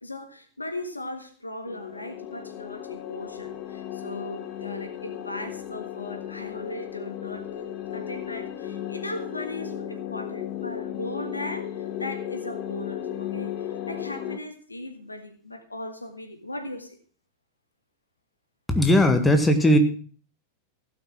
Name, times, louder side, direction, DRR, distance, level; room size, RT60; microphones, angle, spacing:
voice 1, 0.0-7.7 7.9-16.9, left 1 dB, 80° left, 8 dB, 1.5 m, -38 dB
sound 1, 1.7-14.4, left 10 dB, 40° left, 1.1 m, -35 dB
voice 2, 18.7-19.8, left 1 dB, 10° left, 7 dB, 1.6 m, -18 dB
16.0 x 5.9 x 6.0 m, 0.43 s
figure-of-eight pair, 90°, 0 cm